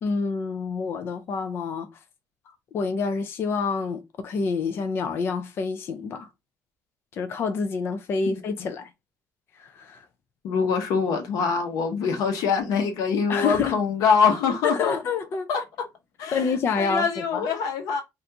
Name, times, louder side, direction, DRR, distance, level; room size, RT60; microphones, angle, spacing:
voice 1, 0.0-2.0 2.7-6.3 7.1-8.9 9.5-10.1 13.3-14.2 14.6-15.5 16.3-17.5, left 5 dB, 40° left, 0.4 m, -28 dB
voice 2, 8.3-8.7 10.4-14.9 15.5-15.6 16.2-16.4 16.8-18.0, left 5 dB, 90° left, 0.9 m, -24 dB
2.8 x 2.4 x 3.4 m
cardioid pair, 180°, 6 cm